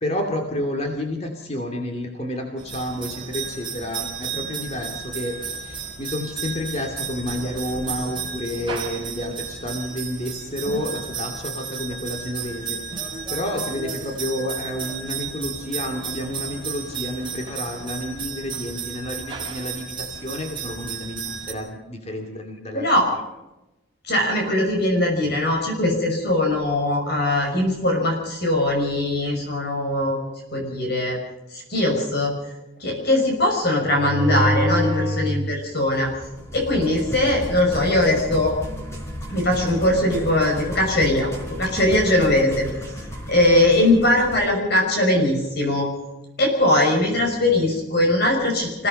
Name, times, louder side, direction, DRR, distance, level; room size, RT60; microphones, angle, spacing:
voice 1, 0.0-12.8 13.3-22.9, left 1 dB, 30° left, 3 dB, 2.6 m, -30 dB
sound 1, 2.6-21.5, right 5 dB, 25° right, 4.3 m, -33 dB
voice 2, 22.7-23.1 24.1-30.2 30.5-31.2 31.5-32.3 32.8-36.1 36.5-38.5 39.3-41.3 41.6-42.7 43.3-45.9 46.4-48.9, left 1 dB, 50° left, 1 dB, 5.8 m, -20 dB
sound 2, 33.9-35.3 35.9-44.5, equal, 15° left, 5.1 m, -29 dB
28.0 x 17.5 x 5.4 m, 0.98 s
head